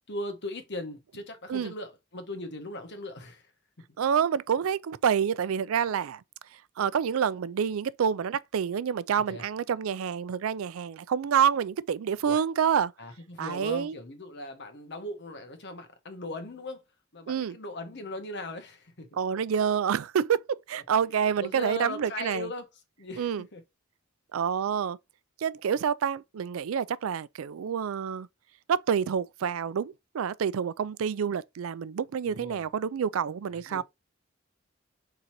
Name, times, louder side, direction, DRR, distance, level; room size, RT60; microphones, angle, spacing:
voice 1, 0.1-3.4 9.3-9.4 12.2-12.4 13.0-16.8 17.1-19.1 20.7-20.8 21.4-22.7 23.0-23.6 32.3-32.7 33.5-33.8, left 2 dB, 55° left, 1.3 m, -39 dB
voice 2, 4.0-6.2 6.8-12.9 13.4-13.9 17.3-17.6 19.1-20.4 20.7-22.5 23.2-23.4 24.3-25.0 25.4-28.3 28.7-33.8, right 7 dB, 85° right, 0.4 m, -28 dB
4.5 x 3.8 x 2.6 m
head